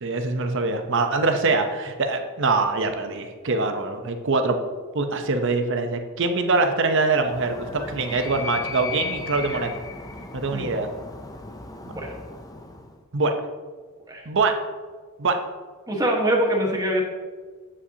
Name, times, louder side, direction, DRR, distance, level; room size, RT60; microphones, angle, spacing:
voice 1, 0.0-4.6 4.9-9.7 10.3-10.9 13.1-13.3 14.3-14.6 15.2-15.4, right 3 dB, 60° right, 6 dB, 0.8 m, -23 dB
Animal, 7.1-13.0, left 4 dB, 15° left, 0.4 m, -36 dB
voice 2, 15.9-17.0, right 1 dB, 15° right, -1 dB, 1.3 m, -23 dB
8.4 x 7.5 x 2.8 m, 1.4 s
head